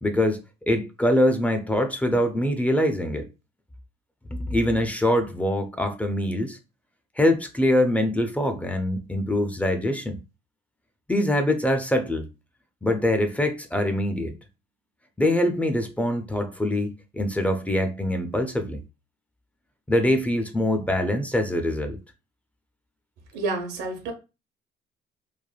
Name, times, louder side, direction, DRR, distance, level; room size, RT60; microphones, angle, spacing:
voice 1, 0.0-3.3 4.3-6.6 7.2-10.2 11.1-12.3 12.8-14.4 15.2-18.8 19.9-22.0, left 1 dB, 10° left, 0.4 m, -24 dB
voice 2, 23.3-24.1, right 3 dB, 90° right, 0.9 m, -29 dB
3.2 x 2.1 x 2.3 m
cardioid pair, 110°, 17 cm